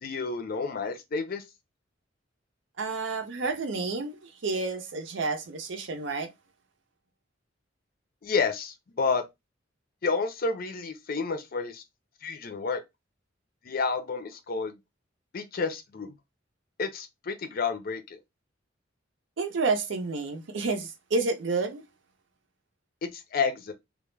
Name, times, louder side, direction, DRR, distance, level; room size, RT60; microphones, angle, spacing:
voice 1, 0.0-1.4 8.2-9.2 10.0-11.8 12.2-12.8 13.6-14.8 15.3-16.1 16.8-18.2 23.0-23.7, left 4 dB, 50° left, 0.5 m, -30 dB
voice 2, 2.8-6.3 19.4-21.9, right 3 dB, 70° right, 0.6 m, -30 dB
2.3 x 2.1 x 3.1 m
head